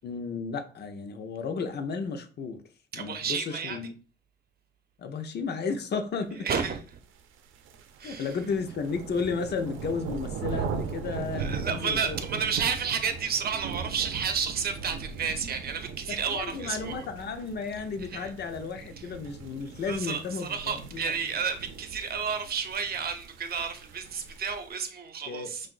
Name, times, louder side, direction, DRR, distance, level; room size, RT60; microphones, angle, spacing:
voice 1, 0.0-2.6 2.9-3.9 5.0-6.5 8.0-12.2 16.1-21.3 25.3-25.7, left 5 dB, 55° left, 0.8 m, -33 dB
voice 2, 2.9-3.8 6.4-6.8 8.0-8.3 11.4-17.0 18.1-18.3 19.8-25.7, right 6 dB, 50° right, 0.8 m, -31 dB
sound 1, 7.2-24.7, right 6 dB, 85° right, 0.6 m, -39 dB
5.8 x 2.6 x 2.5 m
cardioid pair, 90°, 20 cm